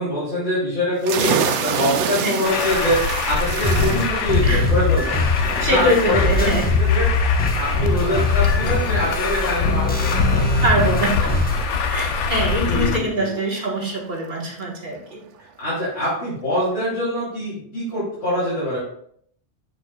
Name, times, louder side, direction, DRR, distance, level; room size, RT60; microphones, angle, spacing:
voice 1, 0.0-7.1 7.3-10.6 12.6-13.3 15.6-18.8, left 1 dB, 65° left, -10 dB, 3.3 m, -24 dB
sound 1, 1.0-14.4, right 7 dB, 80° right, 0.9 m, -30 dB
Truck, 2.4-13.0, left 5 dB, 85° left, 1.0 m, -23 dB
sound 2, 3.6-11.6, left 3 dB, 10° left, 0.9 m, -22 dB
voice 2, 5.6-6.6 10.6-11.4 11.9-15.2, right 1 dB, 45° right, -2 dB, 1.6 m, -23 dB
7.5 x 6.5 x 2.3 m, 0.64 s
omnidirectional pair, 1.2 m